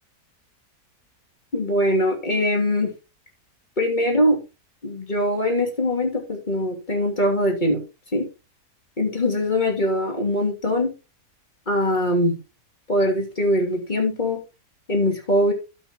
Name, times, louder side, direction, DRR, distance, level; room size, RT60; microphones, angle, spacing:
voice 1, 1.5-2.9 3.8-4.4 4.8-7.8 8.1-8.3 9.0-10.9 11.7-12.4 12.9-14.4 14.9-15.5, left 1 dB, 30° left, 1 dB, 3.0 m, -22 dB
12.5 x 8.4 x 3.0 m, 0.29 s
omnidirectional pair, 1.6 m